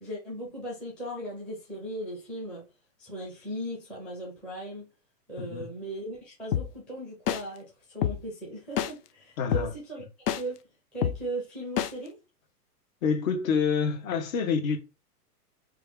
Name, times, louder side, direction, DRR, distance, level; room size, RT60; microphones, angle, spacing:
voice 1, 0.0-2.7 3.0-4.9 5.3-10.0 10.4-10.6 10.9-12.2, right 1 dB, ahead, 0.4 m, -37 dB
sound 1, 6.5-6.6 7.3-7.4 8.0-8.1 8.8-8.9 9.5-9.6 10.3-10.4 11.0-11.1 11.8-11.9, left 10 dB, 75° left, 0.6 m, -26 dB
voice 2, 9.4-9.7 13.0-14.8, left 6 dB, 55° left, 0.9 m, -27 dB
3.0 x 2.3 x 3.4 m
hypercardioid pair, 125°, 48 cm